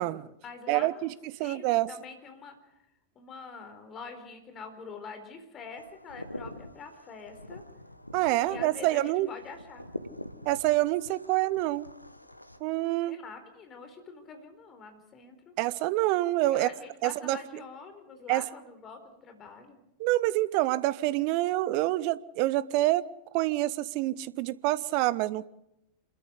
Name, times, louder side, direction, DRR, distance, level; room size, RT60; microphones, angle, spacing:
voice 1, 0.4-2.8 3.1-7.6 8.4-9.9 13.1-15.5 16.5-19.8, left 5 dB, 25° left, 7 dB, 4.2 m, -45 dB
voice 2, 1.4-1.9 8.1-9.3 10.5-11.9 12.6-13.2 15.6-16.7 17.0-17.4 18.3-18.4 20.0-23.0 23.3-25.5, right 17 dB, 45° right, 19 dB, 0.8 m, -26 dB
sound 1, 5.8-12.6, left 1 dB, 85° left, 1.2 m, -45 dB
27.5 x 13.5 x 8.2 m, 0.84 s
figure-of-eight pair, 90°, 0 cm